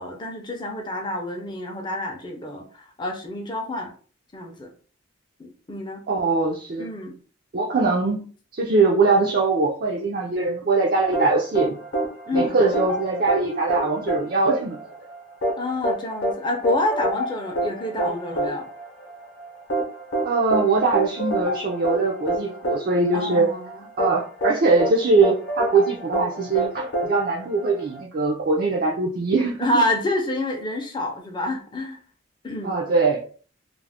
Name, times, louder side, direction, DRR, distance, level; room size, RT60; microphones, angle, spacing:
voice 1, 0.0-3.9 4.3-4.7 5.4-6.0 6.8-7.1 12.3-12.6 15.6-18.7 23.1-23.9 29.6-32.0 32.4-32.7, left 1 dB, 20° left, 2 dB, 0.5 m, -28 dB
voice 2, 6.1-6.9 7.5-8.3 8.5-11.8 12.3-14.9 20.2-23.5 24.0-29.8 32.6-33.2, right 3 dB, 45° right, -2 dB, 0.4 m, -22 dB
sound 1, 11.1-28.0, right 1 dB, 55° left, 0.7 m, -28 dB
2.4 x 2.0 x 3.4 m, 0.41 s
head